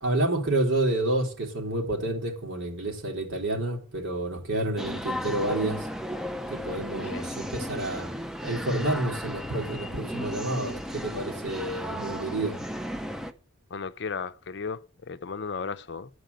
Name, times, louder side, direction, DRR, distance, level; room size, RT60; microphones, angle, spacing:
voice 1, 0.0-5.9 6.5-8.1 8.4-12.6, right 2 dB, 75° right, 2.9 m, -29 dB
sound 1, 4.8-13.3, equal, ahead, 0.4 m, -35 dB
voice 2, 13.7-14.8 15.1-16.1, left 5 dB, 55° left, 0.5 m, -34 dB
10.5 x 4.8 x 7.8 m
head